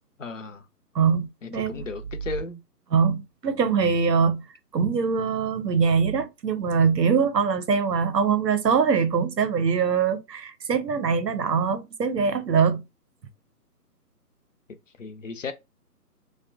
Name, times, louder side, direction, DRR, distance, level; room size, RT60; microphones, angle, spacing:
voice 1, 0.2-0.6 1.4-2.6 15.0-15.5, left 4 dB, 55° left, 0.5 m, -35 dB
voice 2, 0.9-1.9 2.9-4.4 4.7-12.8, right 6 dB, 90° right, 0.6 m, -23 dB
2.6 x 2.2 x 2.4 m
figure-of-eight pair, 145°, 48 cm